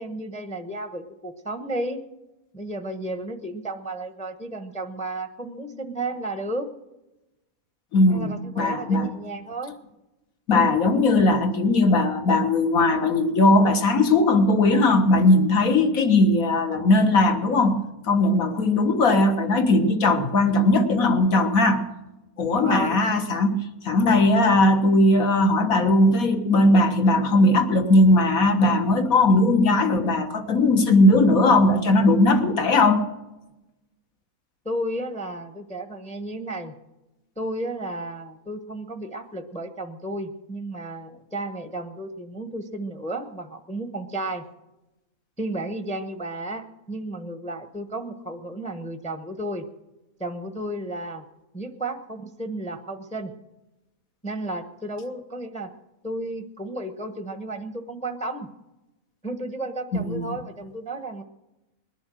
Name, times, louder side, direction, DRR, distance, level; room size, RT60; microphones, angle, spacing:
voice 1, 0.0-2.0 2.5-6.7 8.1-9.8 22.5-23.0 34.6-36.8 37.4-44.4 45.4-49.6 50.2-51.2 51.5-53.3 54.2-55.7 56.0-58.5 59.2-61.2, right 1 dB, 5° left, 7 dB, 0.8 m, -33 dB
voice 2, 7.9-9.2 10.5-21.8 22.4-23.6 23.8-33.0 59.9-60.2, left 2 dB, 70° left, 6 dB, 1.9 m, -19 dB
20.5 x 10.5 x 6.3 m, 1.0 s
omnidirectional pair, 1.5 m